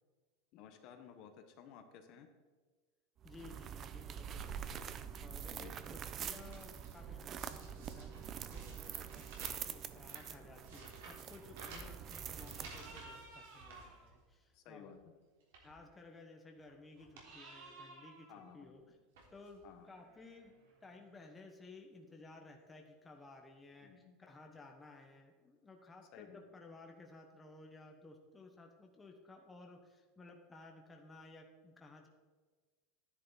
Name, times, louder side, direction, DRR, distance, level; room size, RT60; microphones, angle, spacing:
voice 1, 0.5-2.3 5.5-5.8 14.5-15.0 18.3-18.8 19.6-19.9 23.8-24.2 26.1-26.4, left 8 dB, 45° left, 6 dB, 1.2 m, -55 dB
voice 2, 3.2-4.8 5.2-15.0 15.6-18.3 18.5-18.8 19.3-20.5 20.8-32.1, left 3 dB, 10° left, 2 dB, 1.1 m, -56 dB
sound 1, 3.2-13.1, right 8 dB, 30° right, 0.5 m, -46 dB
sound 2, 4.8-4.9 5.4-5.8 6.0-7.0 7.4-14.5 14.9-15.0 15.4-15.8 16.6-16.7 17.0-17.3 17.6-17.7 18.6-18.8 19.1-19.6 20.4-20.5 20.7-20.8, right 3 dB, 80° right, 3.3 m, -55 dB
sound 3, 9.9-10.5 10.8-11.6 12.5-14.1 15.8-16.4 17.2-18.5 19.7-21.4, right 3 dB, 60° right, 4.0 m, -58 dB
11.5 x 10.0 x 4.1 m, 1.4 s
supercardioid pair, 155°, 0 cm